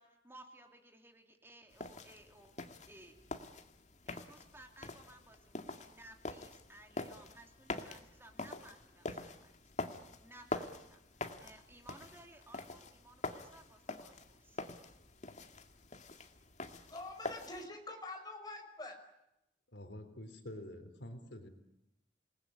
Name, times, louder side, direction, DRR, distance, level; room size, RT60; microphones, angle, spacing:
voice 1, 0.0-2.5 2.9-3.1 4.0-9.5 10.2-14.6, right 1 dB, 15° right, 4 dB, 3.2 m, -58 dB
sound 1, 1.7-17.7, left 2 dB, 45° left, 2.0 m, -45 dB
voice 2, 16.8-19.0, left 2 dB, 25° left, 4 dB, 5.5 m, -46 dB
voice 3, 19.7-21.5, left 1 dB, 85° left, 8 dB, 3.8 m, -47 dB
28.5 x 20.0 x 9.9 m, 0.88 s
head